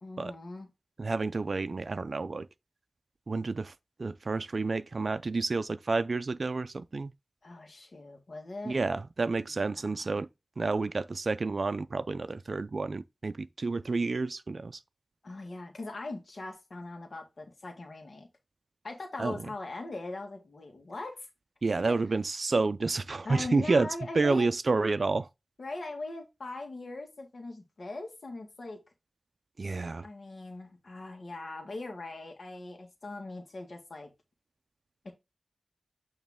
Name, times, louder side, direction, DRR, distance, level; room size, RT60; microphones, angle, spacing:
voice 1, 0.0-0.7 7.4-8.8 9.5-9.9 10.1-10.2 15.2-18.3 18.8-21.3 21.8-22.0 23.2-24.5 25.6-28.8 30.0-34.1 35.0-35.1, left 2 dB, 65° left, 1.6 m, -40 dB
voice 2, 1.0-2.5 3.3-3.7 4.0-7.1 8.7-10.3 10.6-14.8 19.2-19.4 21.6-23.9 24.2-25.3 29.6-30.1, right 3 dB, 55° right, 0.4 m, -29 dB
8.6 x 3.1 x 3.5 m
wide cardioid pair, 95°, 0 cm